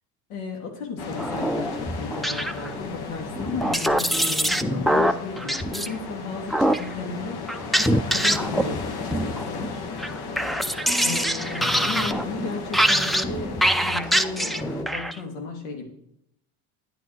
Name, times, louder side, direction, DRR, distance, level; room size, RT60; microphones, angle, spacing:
voice 1, 0.3-9.9 10.6-15.9, left 3 dB, 80° left, 2 dB, 3.2 m, -35 dB
sound 1, 1.0-14.8, left 4 dB, 55° left, 1.9 m, -35 dB
sound 2, 1.2-2.9 3.4-5.9 6.5-6.9 7.5-8.8 9.1-9.7 10.0-15.2, equal, ahead, 0.5 m, -24 dB
10.5 x 9.6 x 4.6 m, 0.74 s
supercardioid pair, 85°, 45 cm